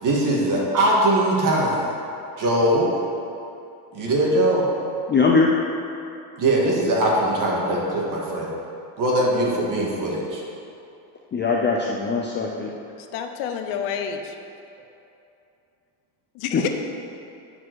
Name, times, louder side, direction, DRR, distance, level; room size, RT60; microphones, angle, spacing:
voice 1, 0.0-1.9 2.4-2.9 3.9-4.7 6.4-8.5 9.0-10.4, right 1 dB, 40° right, -3 dB, 2.0 m, -21 dB
voice 2, 5.1-5.5 11.3-12.7 16.5-16.6, left 4 dB, 25° left, -1 dB, 0.5 m, -21 dB
voice 3, 13.0-14.4 16.3-16.7, left 8 dB, 75° left, 5 dB, 1.0 m, -29 dB
9.5 x 5.0 x 6.2 m, 2.7 s
cardioid pair, 135°, 49 cm